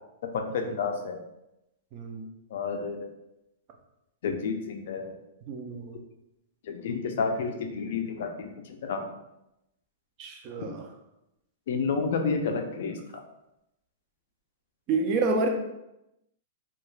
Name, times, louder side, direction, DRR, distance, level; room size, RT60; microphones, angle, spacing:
voice 1, 0.3-1.2 2.5-3.1 4.2-5.1 6.7-9.1 11.7-13.2, left 5 dB, 60° left, 4 dB, 0.4 m, -30 dB
voice 2, 1.9-2.3 5.5-6.0 10.2-10.9 14.9-15.5, right 3 dB, 30° right, 3 dB, 0.3 m, -29 dB
2.3 x 2.2 x 3.1 m, 0.88 s
supercardioid pair, 170°, 0 cm